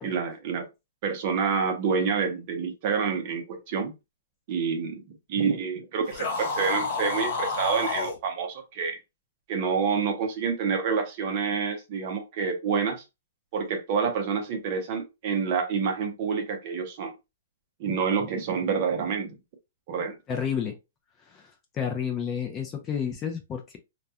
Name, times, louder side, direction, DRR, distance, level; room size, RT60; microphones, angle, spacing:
voice 1, 0.0-0.7 1.0-3.9 4.5-5.0 5.3-9.0 9.5-13.0 13.5-17.1 17.8-19.3 19.9-20.2, right 6 dB, 35° right, 0.6 m, -28 dB
sound 1, 6.1-8.2, left 4 dB, 45° left, 0.7 m, -29 dB
voice 2, 20.3-20.7 21.3-23.8, left 7 dB, 20° left, 0.4 m, -31 dB
2.3 x 2.2 x 2.7 m
hypercardioid pair, 165°, 0 cm